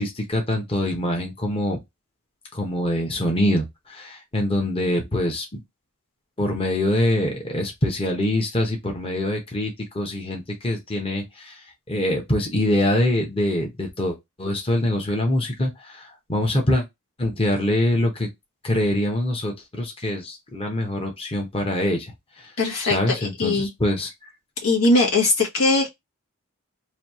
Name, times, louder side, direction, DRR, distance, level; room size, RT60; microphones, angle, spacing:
voice 1, 0.0-1.8 2.5-5.5 6.4-11.6 11.9-16.8 17.2-18.3 18.6-22.1 22.9-24.1, left 1 dB, 25° left, 0.9 m, -24 dB
voice 2, 22.6-23.7 24.6-25.9, left 2 dB, 80° left, 1.4 m, -20 dB
3.2 x 2.7 x 4.2 m
head